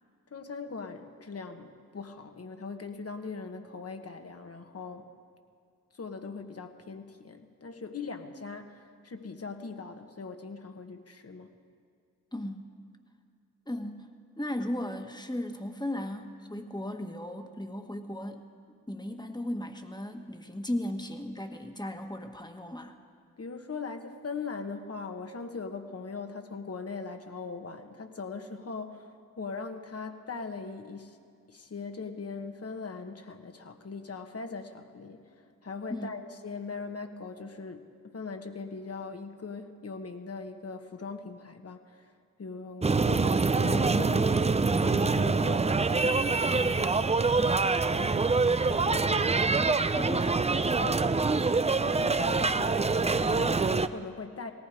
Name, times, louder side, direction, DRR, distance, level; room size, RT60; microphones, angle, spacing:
voice 1, 0.3-5.1 5.9-11.5 23.4-29.1 29.4-31.2 31.5-42.1 42.4-49.6 49.9-50.3 50.8-54.5, left 4 dB, 45° left, 6 dB, 1.4 m, -40 dB
voice 2, 12.3-12.7 13.7-14.1 14.4-18.4 18.9-23.0 35.9-36.1 49.6-50.4, left 1 dB, 10° left, 5 dB, 1.5 m, -36 dB
sound 1, 42.8-53.9, right 4 dB, 20° right, 0.5 m, -25 dB
18.0 x 14.5 x 5.0 m, 2.3 s
supercardioid pair, 40°, 34 cm